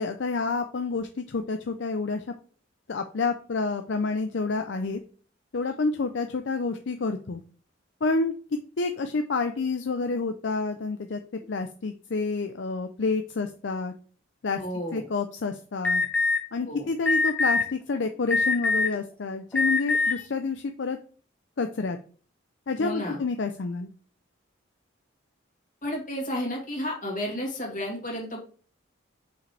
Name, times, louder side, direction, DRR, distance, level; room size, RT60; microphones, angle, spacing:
voice 1, 0.0-2.2 2.9-5.0 5.5-7.4 8.0-8.3 8.8-11.2 11.5-13.9 14.4-14.6 14.9-16.0 16.5-21.0 21.6-22.0 22.7-23.9, left 3 dB, 65° left, 7 dB, 0.5 m, -29 dB
voice 2, 14.6-15.0 16.7-16.9 22.8-23.2 25.8-28.4, left 1 dB, 45° left, -1 dB, 2.6 m, -32 dB
Alarm, 15.8-16.4 17.1-17.6 18.3-19.0 19.5-20.1, left 3 dB, 5° left, 1.3 m, -22 dB
6.7 x 5.2 x 3.3 m, 0.41 s
head